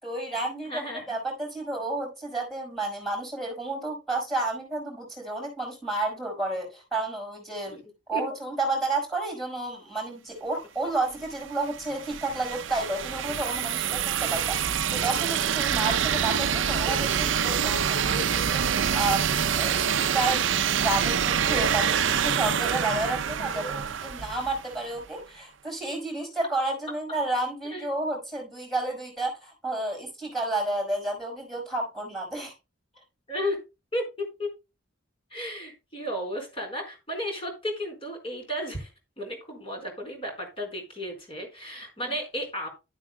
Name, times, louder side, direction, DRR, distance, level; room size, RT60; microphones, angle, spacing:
voice 1, 0.0-7.8 8.1-32.5 42.0-42.2, right 2 dB, ahead, 1 dB, 5.5 m, -31 dB
voice 2, 0.6-1.2 7.7-7.8 8.1-8.2 23.6-23.8 27.7-27.9 33.3-33.6 33.9-34.0 34.4-34.5 35.3-38.9 39.2-42.7, equal, 30° left, 3 dB, 4.5 m, -33 dB
sound 1, 11.2-24.9, right 8 dB, 75° right, 0.6 m, -26 dB
11.5 x 9.7 x 2.2 m, 0.27 s
head